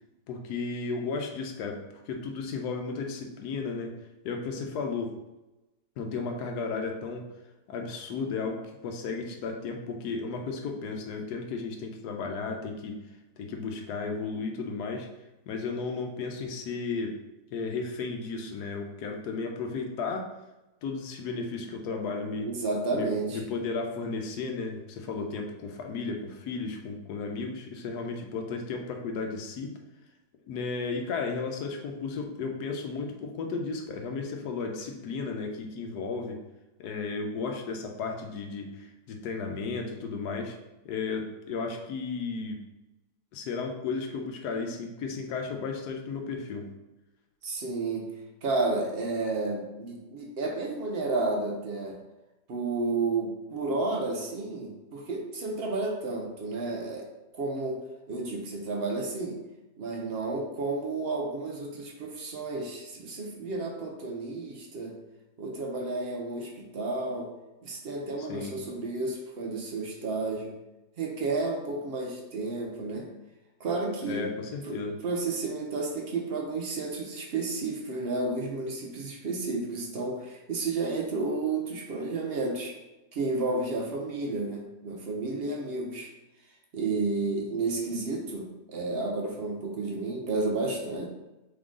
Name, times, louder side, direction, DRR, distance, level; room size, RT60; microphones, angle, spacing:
voice 1, 0.3-3.9 4.2-5.2 6.0-7.3 7.7-13.0 13.4-15.1 15.5-17.2 17.5-20.3 20.8-22.5 22.9-29.7 30.5-36.4 36.8-40.6 40.8-42.6 43.3-46.7 68.2-68.6 74.1-75.0, left 4 dB, 85° left, 3 dB, 1.2 m, -34 dB
voice 2, 22.5-23.4 47.4-48.1 48.4-52.0 52.5-57.1 57.3-57.8 58.1-59.4 59.8-65.0 65.4-67.3 67.6-70.5 71.0-73.1 73.6-74.3 74.6-82.8 83.1-86.1 86.7-91.1, right 3 dB, 55° right, 1 dB, 0.6 m, -31 dB
3.8 x 3.7 x 3.6 m, 1.0 s
omnidirectional pair, 1.7 m